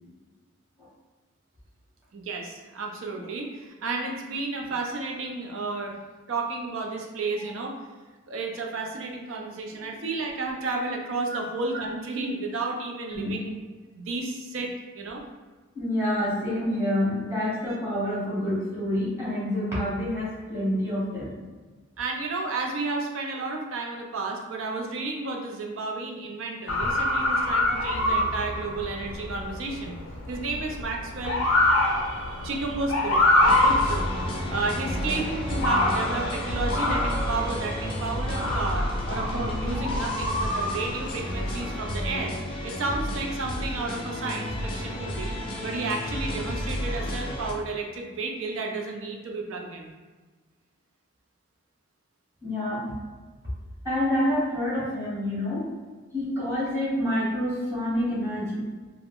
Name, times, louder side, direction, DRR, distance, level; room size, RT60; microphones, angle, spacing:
voice 1, 2.1-6.0 6.3-7.7 8.3-13.6 13.9-15.2 22.0-30.0 30.3-33.2 33.6-34.1 34.5-42.3 42.6-45.3 45.6-49.9, right 3 dB, 70° right, 1 dB, 0.4 m, -32 dB
voice 2, 15.7-21.4 52.4-52.9 53.8-55.7 56.1-58.6, left 1 dB, 15° right, -10 dB, 0.9 m, -27 dB
Motor vehicle (road) / Siren, 26.7-42.2, left 1 dB, 85° left, 0.5 m, -26 dB
sound 1, 33.4-47.5, equal, 25° left, 0.3 m, -32 dB
2.4 x 2.1 x 3.5 m, 1.3 s
head